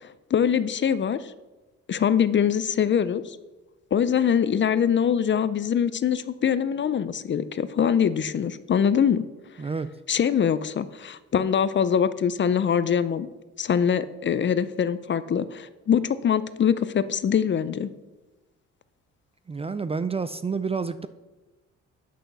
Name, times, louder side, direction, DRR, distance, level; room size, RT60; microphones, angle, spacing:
voice 1, 0.0-1.3 1.9-3.4 3.9-9.3 10.1-13.3 13.6-17.9, left 8 dB, 40° left, 15 dB, 0.5 m, -23 dB
voice 2, 9.6-9.9 19.5-21.1, right 5 dB, 20° right, 13 dB, 0.4 m, -29 dB
8.4 x 6.2 x 6.7 m, 1.1 s
cardioid pair, 90°, 30 cm